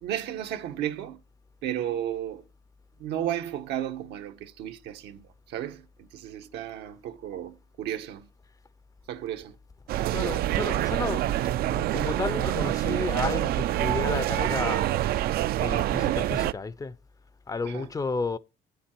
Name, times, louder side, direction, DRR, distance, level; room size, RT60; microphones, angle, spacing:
voice 1, 0.0-1.2 1.6-2.4 3.0-5.2 5.5-8.2 9.1-9.6 17.6-17.9, right 11 dB, 85° right, 1.1 m, -33 dB
sound 1, 9.9-16.5, right 13 dB, 65° right, 0.4 m, -26 dB
voice 2, 10.1-11.3 11.7-14.9 15.6-16.9 17.5-18.4, left 4 dB, 20° left, 0.5 m, -32 dB
8.7 x 7.3 x 4.4 m
cardioid pair, 110°, 17 cm